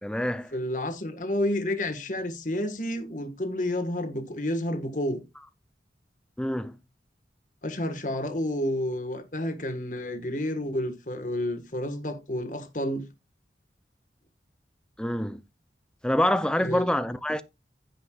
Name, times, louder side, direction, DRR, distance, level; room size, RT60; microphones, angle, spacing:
voice 1, 0.0-0.5 6.4-6.8 15.0-15.4 16.0-17.4, left 1 dB, 5° left, 0.5 m, -26 dB
voice 2, 0.5-5.2 7.6-13.1 16.6-17.0, left 1 dB, 45° left, 1.6 m, -30 dB
16.0 x 5.6 x 2.4 m
head